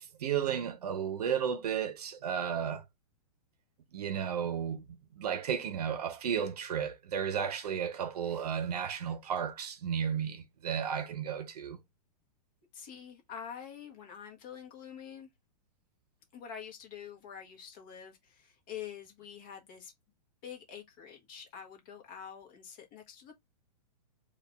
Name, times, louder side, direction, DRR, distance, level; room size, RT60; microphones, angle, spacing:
voice 1, 0.2-2.8 3.9-11.8, right 8 dB, 70° right, 0.9 m, -33 dB
voice 2, 12.7-15.3 16.3-19.9 20.4-23.3, left 8 dB, 30° left, 1.4 m, -46 dB
4.6 x 2.6 x 3.4 m
hypercardioid pair, 175°, 21 cm